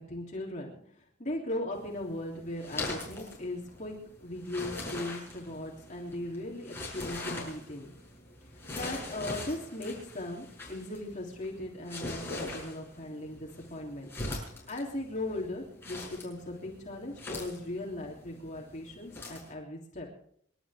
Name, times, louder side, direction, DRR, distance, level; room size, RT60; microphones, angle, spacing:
voice 1, 0.0-3.9 4.2-7.9 8.7-14.1 14.7-20.1, left 1 dB, 35° left, -2 dB, 3.4 m, -38 dB
sound 1, 1.7-19.5, left 2 dB, 10° left, 6.5 m, -42 dB
28.0 x 12.5 x 3.7 m, 0.64 s
head